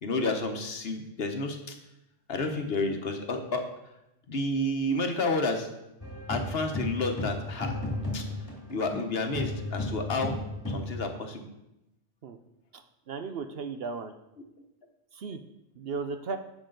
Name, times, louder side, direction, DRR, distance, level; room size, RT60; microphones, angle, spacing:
voice 1, 0.0-1.7 2.3-3.6 4.3-5.7 6.3-7.8 8.1-8.2 8.7-10.3 10.7-11.4, left 2 dB, 55° left, 5 dB, 1.2 m, -30 dB
African Drums Loop, 6.0-9.1 9.3-11.0, left 1 dB, 15° left, 2.1 m, -33 dB
voice 2, 13.1-14.1 15.1-15.4 15.8-16.4, right 5 dB, 60° right, 8 dB, 0.8 m, -35 dB
11.0 x 7.4 x 3.9 m, 0.88 s
omnidirectional pair, 1.2 m